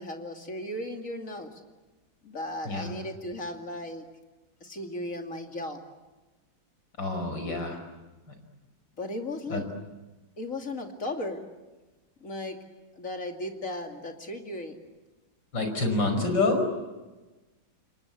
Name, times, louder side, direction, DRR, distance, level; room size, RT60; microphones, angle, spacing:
voice 1, 0.0-1.6 2.2-4.1 4.6-5.8 9.0-9.7 10.4-11.5 12.2-12.6 13.0-14.8, left 1 dB, 45° left, 3 dB, 2.9 m, -36 dB
voice 2, 7.0-7.8 9.5-9.6 15.5-16.6, left 2 dB, 75° left, 6 dB, 5.9 m, -27 dB
28.5 x 24.0 x 8.5 m, 1.2 s
omnidirectional pair, 2.0 m